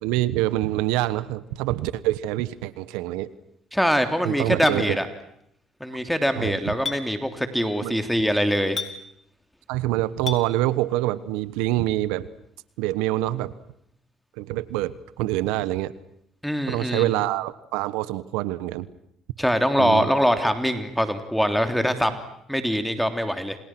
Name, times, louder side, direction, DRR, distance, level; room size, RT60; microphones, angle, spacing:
voice 1, 0.0-3.3 4.2-5.0 6.4-6.6 7.8-8.0 9.7-12.3 12.8-13.5 14.4-15.9 16.7-18.9 19.8-20.1, right 16 dB, 85° right, 16 dB, 1.2 m, -26 dB
voice 2, 3.7-5.1 5.8-8.8 16.4-17.1 19.4-22.1 22.5-23.6, equal, ahead, 7 dB, 3.2 m, -23 dB
Chink clink, 4.7-4.8 6.8-7.0 8.8-9.0 10.3-10.4, left 6 dB, 40° left, 4.2 m, -29 dB
29.5 x 28.5 x 6.1 m, 0.73 s
supercardioid pair, 75°, 0 cm